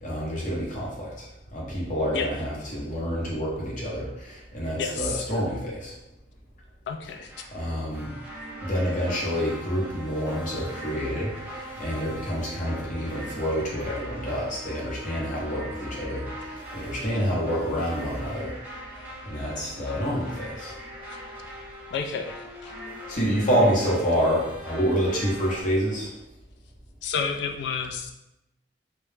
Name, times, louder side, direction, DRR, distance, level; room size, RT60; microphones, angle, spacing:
voice 1, 0.0-5.9 7.5-8.1 8.6-18.5 19.2-20.7 23.1-26.1, equal, 45° left, -5 dB, 0.7 m, -28 dB
voice 2, 4.8-5.2 6.9-7.3 21.9-22.7 27.0-28.1, left 6 dB, 70° left, 4 dB, 0.3 m, -30 dB
sound 1, 7.3-25.6, right 1 dB, 10° right, 0.6 m, -41 dB
2.2 x 2.0 x 3.1 m, 0.91 s
head